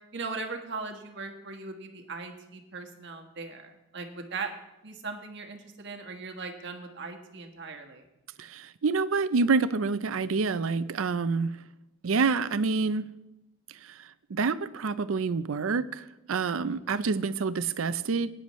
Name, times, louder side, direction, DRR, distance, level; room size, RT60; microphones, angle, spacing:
voice 1, 0.1-4.5 4.8-8.1 16.6-16.8, right 4 dB, 60° right, 4 dB, 1.4 m, -39 dB
voice 2, 8.4-11.6 12.0-13.1 13.8-18.3, right 4 dB, 80° right, 15 dB, 0.5 m, -27 dB
18.5 x 10.0 x 3.1 m, 0.94 s
head